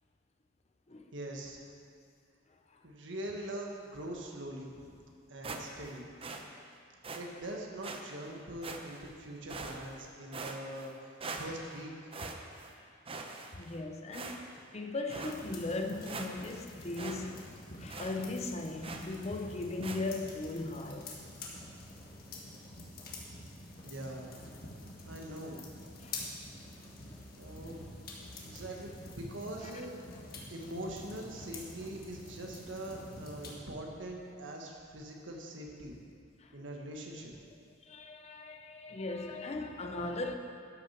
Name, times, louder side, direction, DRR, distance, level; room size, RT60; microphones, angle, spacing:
voice 1, 1.1-1.6 2.8-5.0 5.3-6.0 7.1-12.1 23.8-24.3 25.0-25.6 27.4-27.9 28.4-29.9 30.5-36.0 36.5-37.3, right 1 dB, 70° right, 0 dB, 1.5 m, -43 dB
sound 1, 5.4-5.9 6.2-6.4 7.0-7.2 7.8-8.0 8.6-9.1 9.5-10.0 10.3-10.9 11.2-11.8 12.1-12.7 13.1-13.8 14.1-14.6 15.1-15.4 15.8-15.9 16.0-16.6 17.0-17.2 17.5-17.6 17.9-18.2 18.8-19.1 19.8-20.0, right 3 dB, 30° right, 0.7 m, -42 dB
voice 2, 13.5-14.4 14.7-17.5 17.8-21.1 26.0-26.3 36.4-36.5 37.9-40.3, left 2 dB, 35° left, 5 dB, 0.7 m, -38 dB
sound 2, 15.2-33.5, left 2 dB, 50° left, 1.6 m, -47 dB
12.5 x 6.2 x 5.8 m, 2.3 s
head